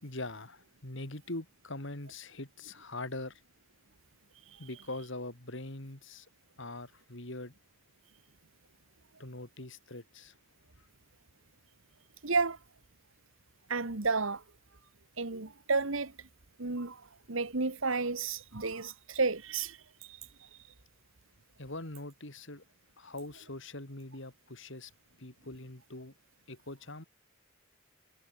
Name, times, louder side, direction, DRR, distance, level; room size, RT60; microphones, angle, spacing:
voice 1, 0.0-3.4 4.6-6.3 6.6-7.5 9.2-10.3 10.8-10.9 21.6-22.6 23.0-24.9 25.2-26.1 26.5-27.0, left 2 dB, 60° left, 2.9 m, -42 dB
voice 2, 12.2-12.6 13.7-14.4 15.2-16.1 16.6-17.0 17.3-19.8 20.1-20.2, right 4 dB, 65° right, 1.6 m, -31 dB
head